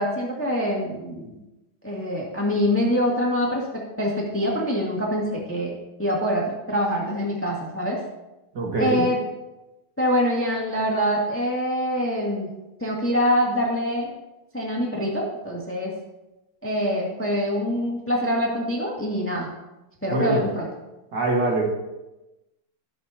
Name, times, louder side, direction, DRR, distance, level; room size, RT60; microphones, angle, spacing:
voice 1, 0.0-1.3 1.8-5.7 6.0-8.0 8.8-9.2 10.0-12.5 12.8-14.1 14.5-15.9 16.6-19.5 20.0-20.6, equal, 5° left, -3 dB, 1.6 m, -25 dB
voice 2, 8.5-9.1 20.1-20.4 21.1-21.6, right 2 dB, 55° right, -1 dB, 2.2 m, -23 dB
18.5 x 6.8 x 2.9 m, 1.0 s
omnidirectional pair, 2.4 m